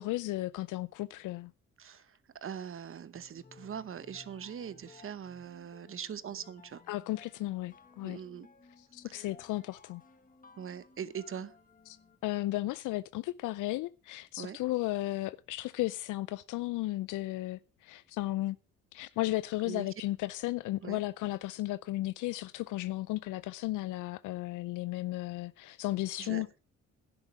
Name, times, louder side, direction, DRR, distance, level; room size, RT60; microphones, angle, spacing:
voice 1, 0.0-1.5 6.9-8.2 8.8-10.0 11.9-12.0 12.2-18.6 18.9-26.6, left 17 dB, 85° left, 0.5 m, -34 dB
voice 2, 2.4-6.8 8.0-8.5 9.1-9.3 10.6-11.5 14.4-14.6 19.7-19.9 20.8-21.0 26.2-26.4, right 8 dB, 45° right, 1.0 m, -41 dB
sound 1, 3.1-12.3, left 4 dB, 25° left, 1.5 m, -59 dB
11.5 x 10.0 x 4.6 m
cardioid pair, 90°, 30 cm